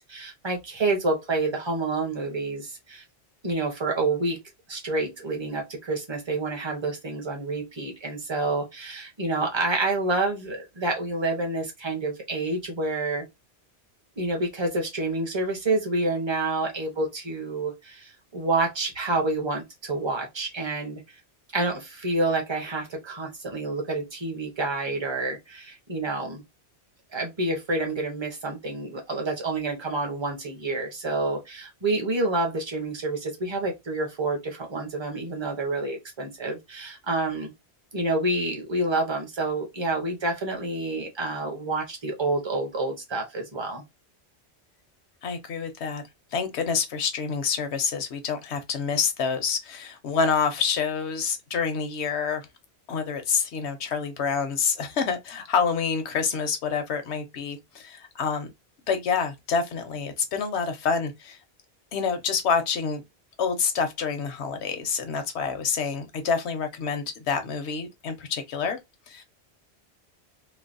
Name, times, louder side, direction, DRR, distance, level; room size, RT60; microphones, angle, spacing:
voice 1, 0.0-3.0 3.4-4.4 4.7-13.2 14.2-21.0 21.5-26.4 27.1-37.5 37.9-43.8, right 2 dB, 25° right, 0.9 m, -28 dB
voice 2, 45.2-46.0 46.3-52.5 52.9-58.5 58.9-61.4 61.9-63.0 63.4-68.8 69.1-69.2, left 6 dB, 80° left, 1.0 m, -27 dB
3.2 x 2.0 x 2.5 m
omnidirectional pair, 1.1 m